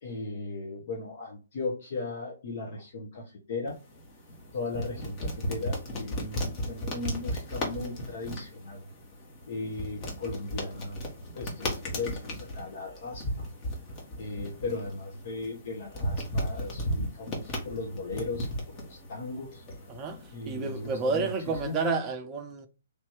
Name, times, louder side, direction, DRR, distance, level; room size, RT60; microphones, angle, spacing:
voice 1, 0.0-3.8 4.5-8.9 9.5-11.1 11.3-13.5 14.2-18.5 18.7-19.6 20.3-21.8, left 3 dB, 50° left, 1.0 m, -37 dB
sound 1, 3.7-21.9, equal, 25° left, 1.3 m, -36 dB
voice 2, 19.9-22.7, right 4 dB, 20° right, 0.6 m, -30 dB
3.3 x 2.9 x 4.5 m
figure-of-eight pair, 125°, 0 cm